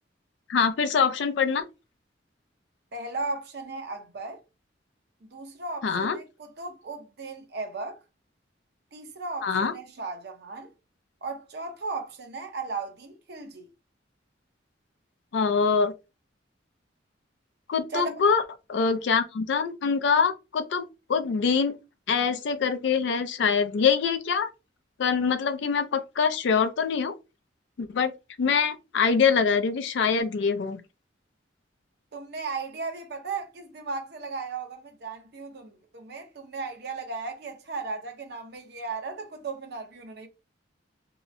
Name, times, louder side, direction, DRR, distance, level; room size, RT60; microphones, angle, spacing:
voice 1, 0.5-1.7 5.8-6.2 9.4-9.7 15.3-15.9 17.7-18.4 18.7-21.8 22.1-24.5 25.0-27.1 27.8-28.1 28.4-30.8, left 5 dB, 65° left, 0.4 m, -24 dB
voice 2, 2.9-4.4 5.2-8.0 8.9-10.7 11.2-13.7 17.9-18.1 32.1-40.3, right 4 dB, 60° right, 0.7 m, -36 dB
2.8 x 2.0 x 2.5 m
head